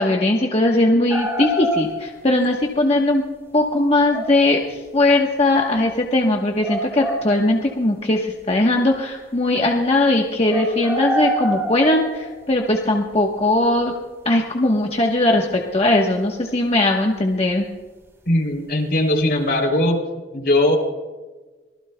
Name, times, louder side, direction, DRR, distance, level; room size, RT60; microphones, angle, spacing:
voice 1, 0.0-3.2 3.5-13.9 14.2-15.5 15.7-17.7, left 2 dB, 35° left, 0 dB, 1.2 m, -19 dB
sound 1, 1.1-2.4 4.1-4.5 5.8-5.9 6.6-7.8 10.4-12.6 15.0-15.1, right 1 dB, 15° right, 3.0 m, -26 dB
voice 2, 18.3-20.0 20.3-20.8, left 1 dB, 65° left, 2 dB, 3.3 m, -19 dB
24.5 x 19.0 x 2.3 m, 1.3 s
head